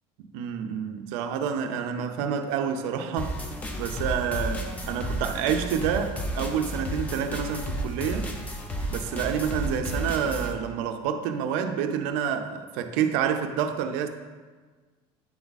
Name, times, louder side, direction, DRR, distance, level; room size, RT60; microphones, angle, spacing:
voice 1, 0.2-3.4 3.8-8.3 8.9-14.1, right 7 dB, 80° right, 0.6 m, -28 dB
sound 1, 3.2-10.5, right 1 dB, 10° left, 0.5 m, -32 dB
8.7 x 3.5 x 4.0 m
cardioid pair, 175°, 12 cm